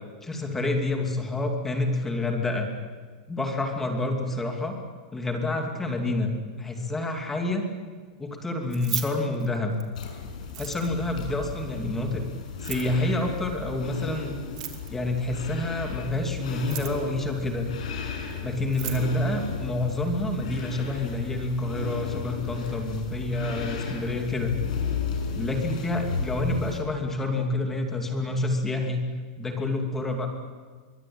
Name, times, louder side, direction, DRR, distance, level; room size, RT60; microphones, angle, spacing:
voice 1, 0.2-2.7 3.3-4.7 5.1-6.3 6.6-7.7 8.2-9.7 10.6-12.2 12.6-14.4 14.9-17.7 18.4-24.5 25.3-29.0 29.4-30.3, left 2 dB, 10° left, 3 dB, 2.6 m, -28 dB
Keys jangling, 8.6-10.0 10.4-11.1 12.5-13.0 14.4-15.1 16.5-17.1 18.3-18.4 18.6-19.1, right 14 dB, 55° right, 3.0 m, -36 dB
sound 1, 9.9-26.8, left 5 dB, 75° left, 7.3 m, -34 dB
23.5 x 23.5 x 8.8 m, 1.5 s
supercardioid pair, 175°, 4 cm